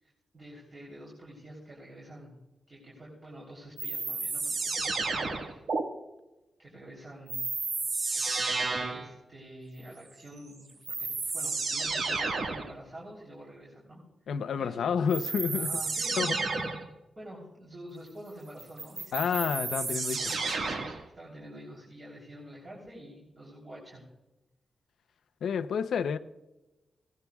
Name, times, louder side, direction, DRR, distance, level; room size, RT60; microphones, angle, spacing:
voice 1, 0.0-2.3 2.7-5.6 6.6-7.4 8.9-10.7 11.0-15.0 15.5-16.5 17.1-19.2 20.2-20.4 20.9-24.0, equal, 30° right, 3.4 m, -48 dB
sound 1, 3.8-5.8 7.3-9.1 10.4-10.5 10.8-12.7 15.1-16.9 18.6-21.0, right 4 dB, 60° right, 1.6 m, -31 dB
voice 2, 14.3-15.8 16.2-16.4 19.1-20.2 25.4-26.2, left 7 dB, 85° left, 0.6 m, -29 dB
19.0 x 17.0 x 2.3 m
wide cardioid pair, 155°, 0 cm